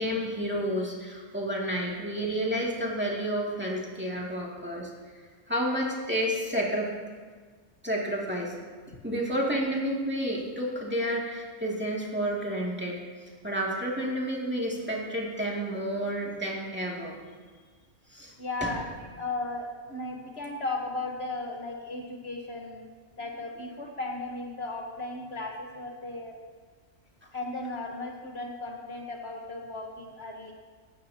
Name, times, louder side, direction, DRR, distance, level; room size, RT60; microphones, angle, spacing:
voice 1, 0.0-4.9 5.5-6.9 7.8-8.7 9.0-13.0 13.4-17.2 18.1-18.3 18.6-18.7, equal, 10° right, -4 dB, 2.4 m, -30 dB
voice 2, 18.4-18.9 19.2-22.8 23.2-26.3 27.3-30.5, left 2 dB, 50° left, 0 dB, 1.4 m, -36 dB
18.0 x 15.5 x 2.9 m, 1.5 s
omnidirectional pair, 1.4 m